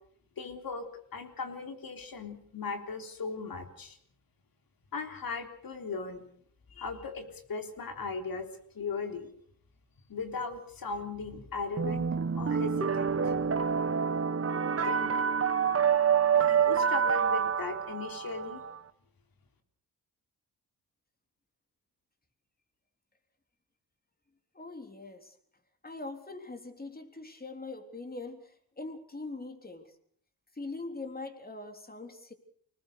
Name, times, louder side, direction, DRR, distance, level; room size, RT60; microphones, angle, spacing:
voice 1, 0.4-0.9 1.1-4.0 4.9-6.3 6.8-8.5 8.7-9.3 10.1-13.4 14.7-15.3 16.3-18.6, left 4 dB, 65° left, 6 dB, 3.7 m, -38 dB
sound 1, 11.8-18.8, right 7 dB, 35° right, 1.4 m, -27 dB
voice 2, 24.5-25.4 25.8-29.9 30.5-32.3, left 3 dB, 25° left, 6 dB, 3.7 m, -42 dB
25.5 x 19.5 x 6.7 m, 0.62 s
cardioid pair, 80°, 38 cm